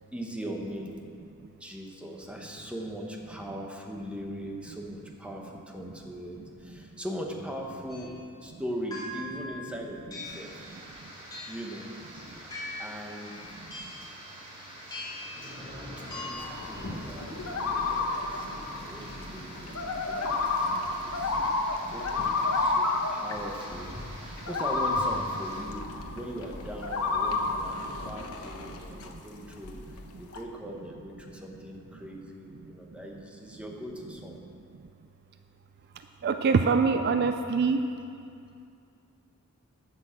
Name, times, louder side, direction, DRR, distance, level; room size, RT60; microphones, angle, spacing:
voice 1, 0.1-0.9 1.6-8.1 8.4-10.6 11.5-11.9 12.8-13.3 16.3-17.4 17.9-21.6 21.9-23.9 24.2-34.4, equal, 5° right, 0 dB, 1.2 m, -40 dB
sound 1, 7.9-8.1 8.9-9.4 10.1-10.5 11.3-11.7 12.5-13.0 13.7-14.1 14.9-15.4 16.1-16.3, left 1 dB, 20° left, 2.8 m, -40 dB
sound 2, 10.2-25.6, equal, 25° right, 2.8 m, -46 dB
sound 3, 16.4-29.2 29.5-30.4, left 3 dB, 75° left, 1.0 m, -31 dB
voice 2, 36.2-37.9, right 4 dB, 50° right, 7 dB, 0.4 m, -24 dB
12.0 x 6.3 x 7.6 m, 2.5 s
head